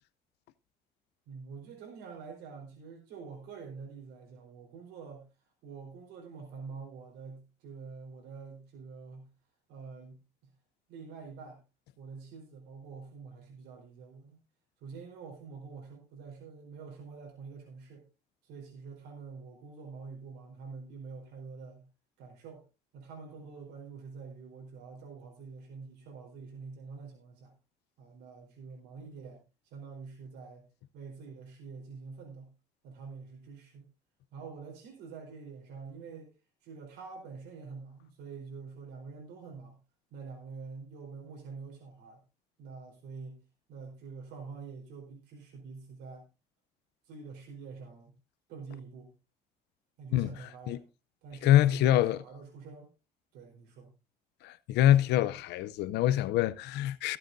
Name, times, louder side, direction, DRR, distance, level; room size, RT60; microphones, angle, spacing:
voice 1, 1.3-5.3 5.6-9.3 9.7-10.5 10.9-11.6 12.0-14.4 14.8-18.1 18.4-21.9 22.2-22.6 22.9-27.5 28.0-30.7 30.9-32.5 32.8-33.9 34.3-36.3 36.6-39.8 40.1-42.2 42.6-46.2 47.0-48.1 48.5-49.1 50.0-50.8 51.2-52.9 53.3-53.9, right 5 dB, 90° right, 4.0 m, -46 dB
voice 2, 50.1-50.8 51.4-52.2 54.4-57.2, left 12 dB, 85° left, 0.6 m, -25 dB
22.5 x 7.8 x 2.6 m
cardioid pair, 110°, 17 cm